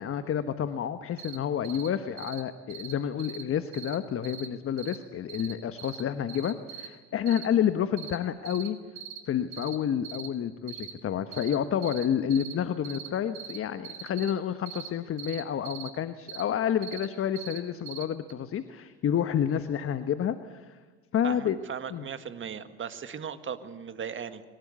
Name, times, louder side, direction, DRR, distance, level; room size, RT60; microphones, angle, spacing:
voice 1, 0.0-8.8 9.3-20.8 21.1-21.6 21.9-22.1, left 9 dB, 45° left, 11 dB, 1.3 m, -29 dB
sound 1, 1.2-1.4 1.6-1.9 2.2-2.4 2.7-2.9 3.2-3.4 3.7-4.0 4.2-4.5 4.8-5.0 5.3-5.5 5.8-6.0 6.3-6.9 7.3-7.5 8.0-8.2 8.5-8.7 9.0-9.2 9.5-9.8 10.0-10.3 10.7-10.9 11.3-11.6 11.8-12.1 12.3-12.5 12.8-13.1 13.3-13.6 13.8-14.3 14.7-14.9 15.2-15.9 16.3-16.4 16.8-17.1 17.4-17.6 17.9-18.0 18.3-18.4, right 11 dB, 65° right, 4.4 m, -41 dB
voice 2, 21.2-24.4, right 7 dB, 40° right, 10 dB, 1.8 m, -38 dB
23.0 x 19.5 x 8.3 m, 1.4 s
hypercardioid pair, 65°, 32 cm